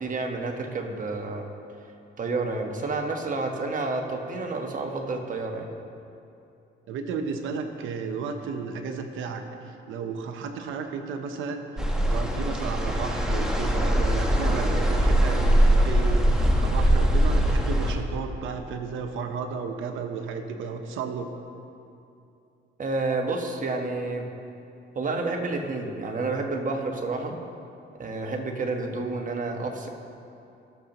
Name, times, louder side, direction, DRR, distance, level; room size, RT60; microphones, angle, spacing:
voice 1, 0.0-1.5 2.2-5.6 22.8-24.3 24.9-27.3 28.0-29.9, right 3 dB, 40° right, 2 dB, 1.2 m, -29 dB
voice 2, 6.9-11.8 12.1-21.3, right 5 dB, 85° right, 6 dB, 0.9 m, -33 dB
sound 1, 11.8-18.0, equal, 5° right, 1.1 m, -22 dB
17.5 x 6.7 x 3.0 m, 2.6 s
cardioid pair, 90°, 20 cm